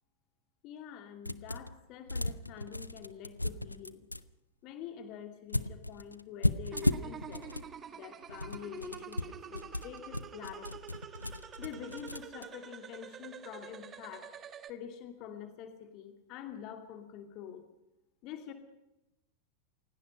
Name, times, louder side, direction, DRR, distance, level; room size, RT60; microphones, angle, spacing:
voice 1, 0.6-4.1 4.6-7.5 7.9-10.8 11.6-14.3 14.7-17.6 18.2-18.5, left 9 dB, 40° left, 7 dB, 2.6 m, -46 dB
sound 1, 1.3-1.8 2.1-4.2 5.5-7.7 8.2-12.4, left 1 dB, 85° left, 0.7 m, -35 dB
sound 2, 6.7-14.7, right 8 dB, 25° right, 1.5 m, -48 dB
28.5 x 17.0 x 5.6 m, 0.91 s
figure-of-eight pair, 90°, 0 cm